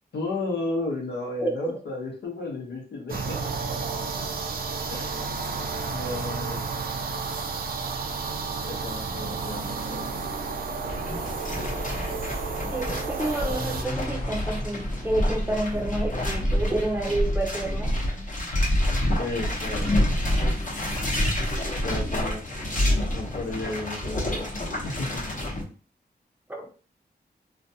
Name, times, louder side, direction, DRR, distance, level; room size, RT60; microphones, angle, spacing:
voice 1, 0.1-3.5 4.9-5.3 5.8-6.7 8.6-10.4 19.2-19.9 21.8-22.4 23.1-25.4, left 2 dB, 80° left, -1 dB, 0.8 m, -33 dB
voice 2, 1.4-1.7 12.7-17.9 26.5-26.7, right 1 dB, 10° right, 1 dB, 0.6 m, -29 dB
sound 1, 3.1-13.8, right 4 dB, 60° right, 0.4 m, -31 dB
sound 2, 10.8-25.6, left 1 dB, 50° left, 0.8 m, -27 dB
sound 3, 13.5-16.7, equal, 20° left, 1.1 m, -40 dB
2.4 x 2.2 x 2.7 m, 0.39 s
cardioid pair, 75°, 17 cm